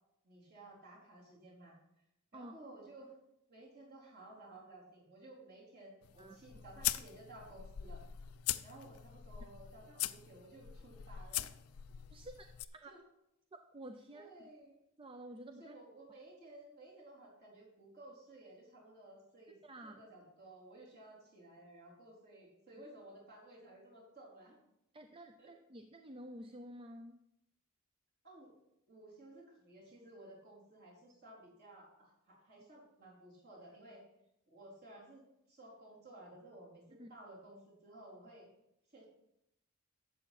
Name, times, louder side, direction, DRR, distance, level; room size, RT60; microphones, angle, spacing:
voice 1, 0.2-2.0 2.3-3.1 3.5-8.0 8.6-11.5 12.9-13.0 14.1-14.7 15.6-19.6 19.8-24.6 25.4-25.5 28.2-28.5 28.9-34.0 34.5-35.2 35.5-38.5 38.9-39.1, right 1 dB, 45° right, -4 dB, 3.9 m, -56 dB
sound 1, 6.0-12.6, left 13 dB, 75° left, 0.4 m, -42 dB
voice 2, 12.1-12.5 12.7-13.0 13.7-14.5 15.0-15.8 19.6-20.0 24.9-27.2 37.0-37.1, right 1 dB, 25° right, 6 dB, 0.5 m, -50 dB
12.0 x 7.8 x 4.2 m, 0.84 s
head